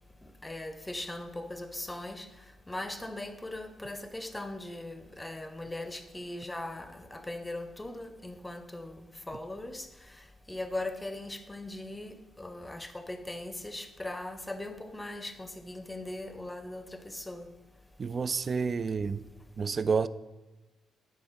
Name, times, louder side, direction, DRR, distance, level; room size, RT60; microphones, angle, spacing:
voice 1, 0.4-2.3 2.7-9.9 10.5-17.5, left 1 dB, 10° left, 0.7 m, -39 dB
voice 2, 18.0-19.2 19.6-20.1, right 5 dB, 40° right, 0.3 m, -29 dB
9.3 x 4.3 x 5.5 m
cardioid pair, 90°, 0 cm